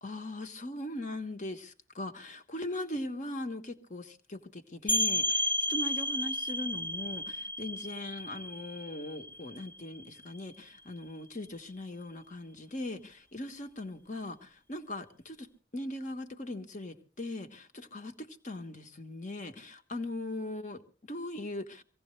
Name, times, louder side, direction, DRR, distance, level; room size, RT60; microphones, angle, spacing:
voice 1, 0.0-21.8, left 1 dB, 40° left, 1.3 m, -40 dB
sound 1, 4.9-10.4, left 1 dB, 10° left, 0.8 m, -32 dB
23.5 x 16.5 x 3.2 m
head